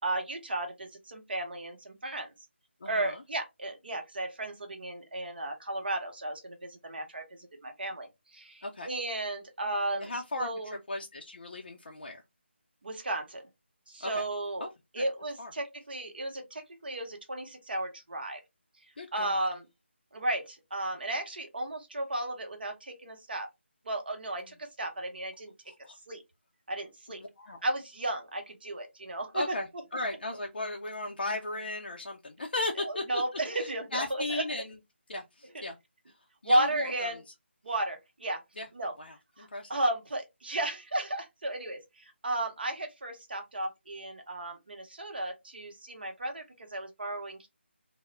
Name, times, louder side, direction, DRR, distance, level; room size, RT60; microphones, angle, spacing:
voice 1, 0.0-2.3 2.8-10.1 10.4-10.8 12.8-13.4 13.9-14.7 14.9-18.4 19.1-19.7 20.1-23.5 23.8-25.5 26.1-26.2 26.7-27.2 27.6-29.5 32.8-34.4 35.5-35.6 36.4-37.2 37.6-38.4 38.7-38.9 39.4-47.5, right 1 dB, 55° right, 0.8 m, -34 dB
voice 2, 2.8-3.2 8.6-8.9 10.0-12.2 14.0-14.2 14.6-14.7 15.0-15.1 15.4-15.5 19.0-19.5 24.4-24.5 25.7-26.0 27.1-27.6 29.3-33.2 33.5-34.8 35.1-35.8 36.1-36.2 36.4-37.2 38.6-38.7 39.0-39.8, left 2 dB, 50° left, 0.4 m, -37 dB
2.3 x 2.0 x 3.0 m
figure-of-eight pair, 155°, 7 cm